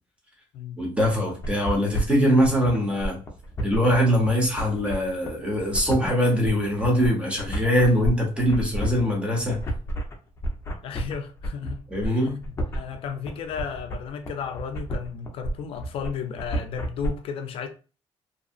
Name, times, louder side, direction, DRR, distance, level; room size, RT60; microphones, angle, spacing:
voice 1, 0.8-3.2 3.6-9.6 11.9-12.4, equal, 10° right, 1.0 m, -22 dB
sound 1, 1.0-17.1, right 1 dB, 25° left, 0.7 m, -31 dB
voice 2, 10.8-17.7, left 7 dB, 60° left, 0.4 m, -34 dB
2.7 x 2.4 x 2.4 m
cardioid pair, 135°, 11 cm